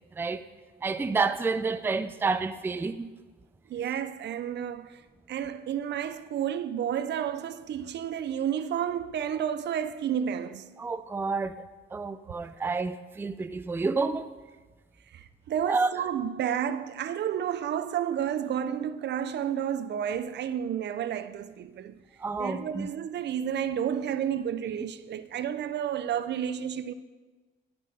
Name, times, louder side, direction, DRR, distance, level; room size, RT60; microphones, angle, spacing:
voice 1, 0.1-0.4 0.8-3.1 10.8-11.6 11.9-14.3 15.7-15.9 22.2-22.9, right 4 dB, 10° right, 0.4 m, -29 dB
voice 2, 3.7-5.0 5.3-10.6 15.1-22.0 22.4-26.9, right 9 dB, 60° right, 0.5 m, -31 dB
11.0 x 7.6 x 4.2 m
cardioid pair, 90°, 20 cm